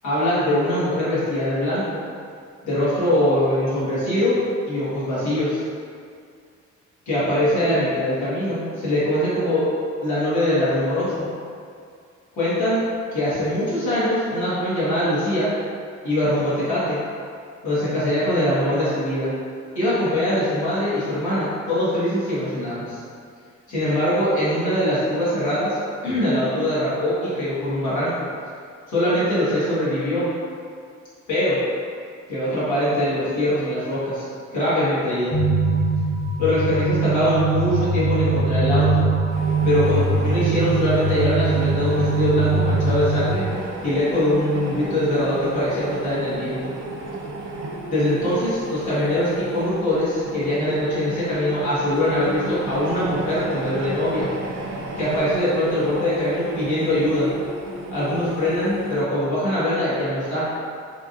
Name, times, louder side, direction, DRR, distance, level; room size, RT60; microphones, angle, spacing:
voice 1, 0.0-2.0 2.6-4.4 4.7-5.6 7.1-9.7 10.0-11.3 12.3-12.9 13.1-15.5 16.0-17.0 17.6-19.3 19.7-23.0 23.7-25.8 26.0-28.2 28.9-30.3 31.3-31.6 32.3-34.3 34.5-35.4 36.4-39.0 39.6-43.4 43.8-46.6 47.9-54.3 55.0-57.3 57.9-60.5, left 1 dB, 70° left, -11 dB, 1.4 m, -22 dB
sound 1, 35.3-43.3, right 3 dB, 25° left, 0.8 m, -21 dB
sound 2, 39.3-59.0, right 2 dB, 85° right, 0.6 m, -33 dB
3.5 x 2.5 x 2.5 m, 2.3 s
cardioid pair, 90°, 30 cm